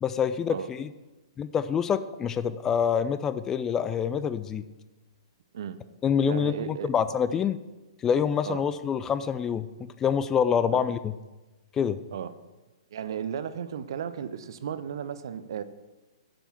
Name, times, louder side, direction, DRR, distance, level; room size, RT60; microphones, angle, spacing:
voice 1, 0.0-0.9 1.4-4.6 6.0-7.6 8.0-9.7 10.0-11.1 11.7-12.0, left 7 dB, 15° left, 13 dB, 0.3 m, -26 dB
voice 2, 6.3-6.9 8.5-8.6 10.7-10.8 12.1-12.3 12.9-15.6, right 8 dB, 50° right, 13 dB, 0.6 m, -34 dB
8.7 x 5.4 x 7.1 m, 1.1 s
figure-of-eight pair, 115°, 3 cm